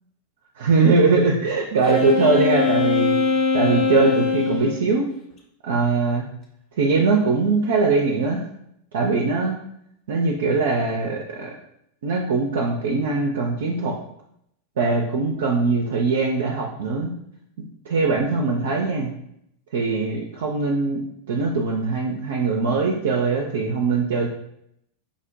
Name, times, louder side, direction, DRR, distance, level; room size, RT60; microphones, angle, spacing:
voice 1, 0.6-5.1 5.6-6.3 6.8-8.4 8.9-9.6 10.1-11.5 12.0-14.0 14.8-17.1 17.9-19.1 19.7-21.0 21.3-24.3, right 4 dB, 60° right, 1 dB, 0.4 m, -21 dB
Wind instrument woodwind instrument, 1.8-4.7, left 5 dB, 30° left, 0.7 m, -21 dB
5.0 x 2.1 x 2.6 m, 0.74 s
figure-of-eight pair, 90°, 0 cm